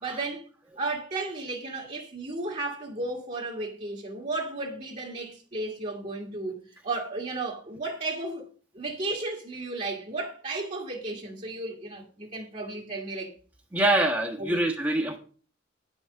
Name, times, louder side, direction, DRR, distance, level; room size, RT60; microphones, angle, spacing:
voice 1, 0.0-0.5 0.8-8.5 8.7-13.3 14.4-14.6, right 2 dB, 40° right, 1.6 m, -34 dB
voice 2, 13.7-15.2, right 1 dB, 10° right, 1.2 m, -25 dB
10.0 x 5.8 x 6.5 m
head